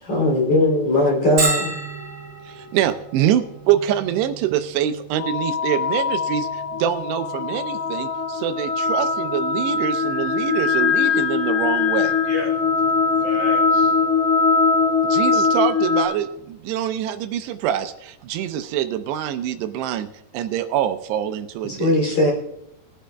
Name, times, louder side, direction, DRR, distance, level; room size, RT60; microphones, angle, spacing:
voice 1, 0.0-1.7 21.6-22.3, left 1 dB, 35° left, -3 dB, 3.8 m, -19 dB
Bell, 1.4-16.8, right 3 dB, 35° right, 2.4 m, -35 dB
voice 2, 2.5-12.1 15.0-20.1 20.3-22.2, right 10 dB, 80° right, 9 dB, 2.8 m, -25 dB
sound 1, 5.2-16.1, left 5 dB, 50° left, 4.4 m, -21 dB
voice 3, 12.0-14.1 22.1-22.3, left 2 dB, 85° left, -2 dB, 1.4 m, -34 dB
20.0 x 10.0 x 2.3 m, 0.80 s
omnidirectional pair, 5.0 m